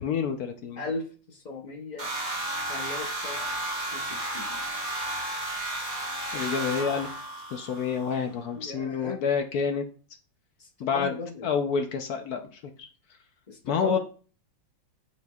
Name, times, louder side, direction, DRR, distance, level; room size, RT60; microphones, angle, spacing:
voice 1, 0.0-0.8 6.3-7.1 7.5-9.8 10.8-12.9 13.6-14.0, left 6 dB, 65° left, 5 dB, 1.0 m, -28 dB
voice 2, 0.8-2.1 2.7-3.5 3.9-4.6 6.7-6.9 8.3-9.2 10.6-11.5 13.5-14.0, left 4 dB, 45° left, 1 dB, 0.5 m, -38 dB
sound 1, 2.0-8.1, right 1 dB, 35° right, 2.1 m, -33 dB
9.6 x 4.3 x 2.3 m, 0.40 s
omnidirectional pair, 2.1 m